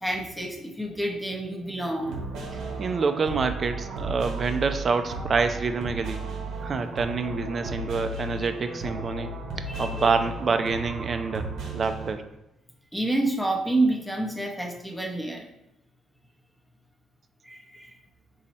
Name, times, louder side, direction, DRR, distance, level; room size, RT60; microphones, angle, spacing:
voice 1, 0.0-2.2 8.1-8.5 9.7-10.1 12.9-15.5 17.4-18.0, right 2 dB, ahead, 1 dB, 0.8 m, -29 dB
sound 1, 2.0-12.1, right 2 dB, 85° right, 0.8 m, -35 dB
voice 2, 2.8-6.2 6.6-11.5 11.7-12.2, right 4 dB, 45° right, 8 dB, 0.4 m, -27 dB
4.0 x 2.8 x 4.2 m, 0.89 s
cardioid pair, 90°, 0 cm